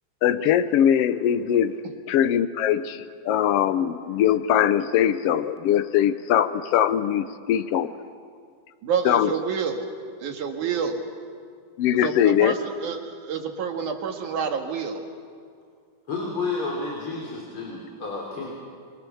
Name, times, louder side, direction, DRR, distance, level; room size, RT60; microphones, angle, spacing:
voice 1, 0.2-1.7 2.1-7.9 9.0-9.3 11.8-12.5, left 10 dB, 80° left, 12 dB, 1.3 m, -21 dB
voice 2, 8.8-9.8 10.2-11.0 12.0-12.6 12.8-15.1, right 6 dB, 70° right, 3 dB, 3.4 m, -28 dB
voice 3, 16.1-18.5, left 3 dB, 40° left, -3 dB, 4.2 m, -31 dB
27.0 x 23.0 x 7.1 m, 2.1 s
omnidirectional pair, 3.7 m